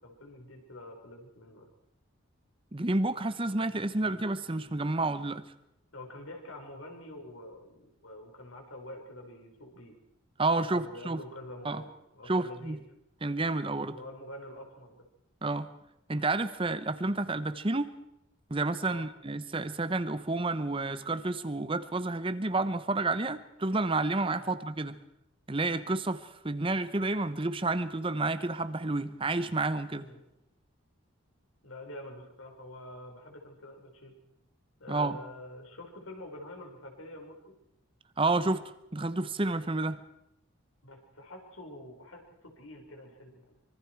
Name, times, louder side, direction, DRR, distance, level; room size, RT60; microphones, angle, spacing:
voice 1, 0.0-1.7 4.0-4.2 5.9-9.9 10.7-12.8 13.9-15.0 18.8-19.0 24.4-24.6 29.9-30.2 31.6-34.1 34.8-37.4 40.8-43.4, left 1 dB, 75° left, 2 dB, 4.9 m, -46 dB
voice 2, 2.7-5.4 10.4-11.2 11.6-11.8 12.3-12.8 13.2-14.0 15.4-15.7 16.1-17.9 18.5-25.0 25.5-30.1 34.9-35.2 38.2-38.6 38.9-40.0, right 2 dB, 25° right, 12 dB, 0.9 m, -30 dB
25.0 x 24.0 x 4.6 m, 0.85 s
head